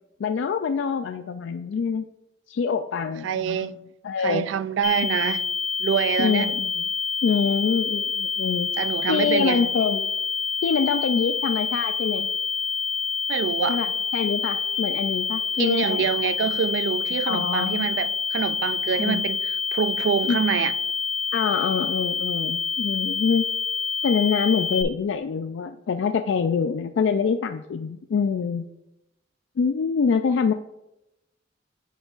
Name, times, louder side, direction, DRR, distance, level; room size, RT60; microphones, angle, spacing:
voice 1, 0.2-2.1 2.5-3.8 4.0-4.5 6.2-6.9 7.2-8.7 9.1-10.1 10.6-12.3 13.7-16.1 17.3-17.9 19.0-19.3 20.3-20.4 21.3-23.5 24.0-28.7 29.6-30.5, left 6 dB, 75° left, 0.3 m, -25 dB
voice 2, 3.2-3.8 4.2-5.4 5.8-6.5 8.8-9.7 13.3-13.8 15.6-19.4 19.7-20.7, right 7 dB, 75° right, 0.3 m, -25 dB
sound 1, 4.8-24.8, left 5 dB, 45° left, 1.1 m, -27 dB
9.0 x 6.2 x 2.4 m
head